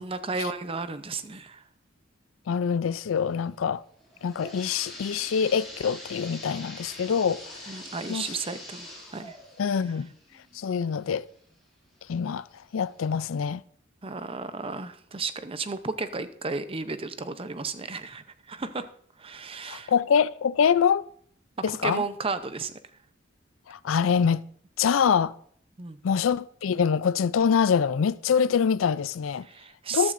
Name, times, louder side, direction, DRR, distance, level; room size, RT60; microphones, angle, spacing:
voice 1, 0.0-1.6 7.7-9.4 14.0-18.9 19.2-19.9 21.7-22.7 25.8-26.0 29.4-30.1, right 4 dB, 30° right, 0.7 m, -33 dB
voice 2, 2.5-3.8 4.2-7.8 8.1-8.3 9.6-10.1 10.5-11.3 12.1-12.4 12.7-13.6 19.7-21.0 21.6-22.0 23.7-24.4 24.8-25.3 26.0-29.5 29.9-30.1, left 7 dB, 85° left, 0.4 m, -25 dB
sound 1, 4.0-11.6 12.1-12.2 12.9-13.0 13.4-13.5, left 1 dB, ahead, 4.9 m, -44 dB
14.0 x 12.0 x 2.6 m
head